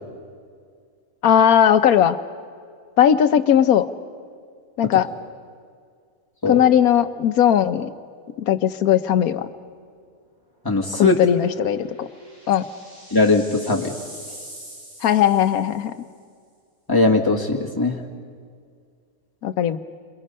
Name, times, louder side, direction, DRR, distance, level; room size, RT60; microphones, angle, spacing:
voice 1, 1.2-2.2 3.0-3.9 4.8-5.1 6.5-7.9 8.5-9.5 10.9-12.1 12.5-12.6 15.0-15.9 19.4-19.8, left 9 dB, 85° left, 11 dB, 1.3 m, -18 dB
voice 2, 10.6-11.2 13.1-13.9 16.9-18.0, left 3 dB, 15° left, -1 dB, 2.0 m, -19 dB
sound 1, 11.4-16.0, right 1 dB, 70° right, 5.7 m, -43 dB
29.0 x 27.5 x 5.5 m, 2.1 s
omnidirectional pair, 1.5 m